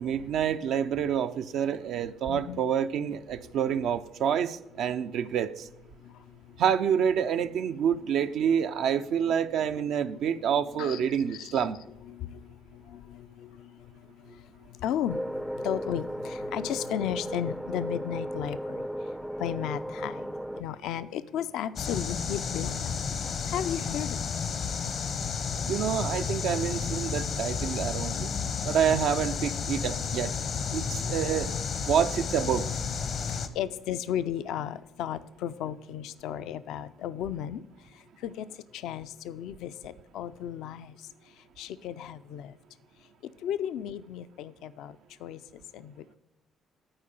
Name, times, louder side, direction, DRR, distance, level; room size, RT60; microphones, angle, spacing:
voice 1, 0.0-5.6 6.6-11.8 25.7-28.2 28.7-30.3 30.7-31.5 31.9-32.7, right 8 dB, 75° right, 9 dB, 0.4 m, -27 dB
voice 2, 1.7-2.6 3.4-3.5 6.0-6.6 7.5-7.6 9.3-9.4 10.1-18.9 19.4-20.3 20.6-24.2 33.2-37.6 38.2-38.5 38.7-40.9 41.6-42.5 43.4-46.2, left 10 dB, 80° left, 13 dB, 0.4 m, -35 dB
sound 1, 15.1-20.6, equal, 5° right, 0.4 m, -35 dB
sound 2, 21.8-33.5, left 6 dB, 60° left, 0.7 m, -32 dB
8.7 x 4.7 x 6.6 m, 0.93 s
supercardioid pair, 75°, 0 cm